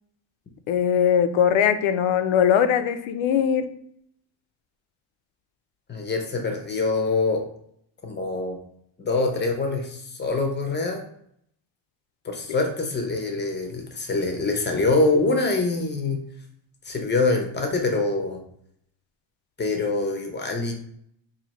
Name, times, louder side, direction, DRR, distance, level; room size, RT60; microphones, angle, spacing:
voice 1, 0.7-3.7, left 8 dB, 80° left, 10 dB, 0.6 m, -20 dB
voice 2, 5.9-7.4 8.0-8.6 9.0-11.0 12.2-16.2 16.9-18.4 19.6-20.7, left 3 dB, 25° left, 3 dB, 0.6 m, -24 dB
4.1 x 2.7 x 2.9 m, 0.69 s
cardioid pair, 145°, 47 cm